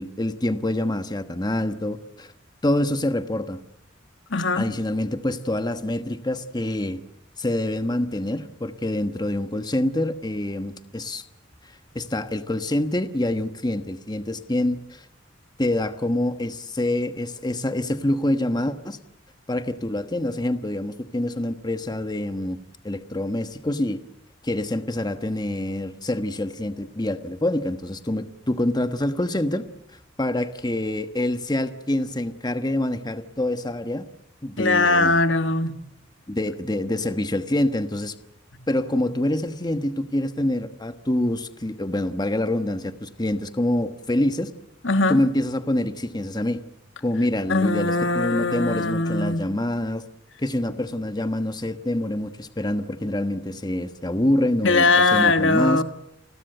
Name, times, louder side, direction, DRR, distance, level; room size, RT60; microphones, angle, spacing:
voice 1, 0.0-2.3 2.6-3.6 4.6-7.0 7.4-11.2 11.6-15.1 15.6-19.0 19.5-22.6 22.8-24.0 24.4-29.6 30.2-34.0 34.4-35.2 36.3-38.1 38.7-44.5 45.1-46.6 47.0-50.0 50.4-55.8, left 1 dB, 20° left, 1.2 m, -26 dB
voice 2, 4.3-4.7 34.6-35.8 44.8-45.2 47.5-49.4 54.6-55.8, left 3 dB, 70° left, 1.7 m, -20 dB
30.0 x 21.0 x 7.9 m
head